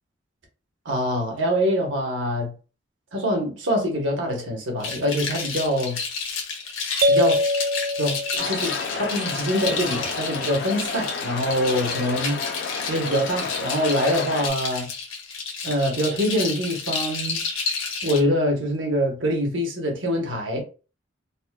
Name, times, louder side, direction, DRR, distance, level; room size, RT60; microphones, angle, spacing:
voice 1, 0.8-2.5 3.1-6.0 7.1-7.4 8.0-12.4 12.9-14.9 15.6-17.4 18.0-20.6, equal, 70° right, 1.0 m, -24 dB
sound 1, 4.8-18.2, left 4 dB, 75° left, 1.0 m, -31 dB
sound 2, 7.0-8.9, left 1 dB, 50° right, 0.3 m, -23 dB
sound 3, 8.4-14.5, left 5 dB, 55° left, 0.5 m, -32 dB
4.0 x 2.2 x 2.3 m
head